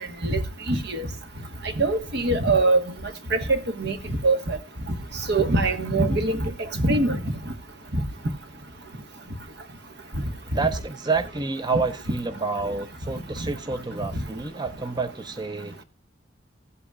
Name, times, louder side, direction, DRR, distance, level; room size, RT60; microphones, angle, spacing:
voice 1, 0.7-1.1 1.8-2.8 3.3-4.0 4.2-4.6 5.3-7.2 7.9-8.0, right 2 dB, 65° right, 1.4 m, -22 dB
voice 2, 10.5-15.8, right 4 dB, 25° right, 0.6 m, -28 dB
16.0 x 8.3 x 2.4 m
head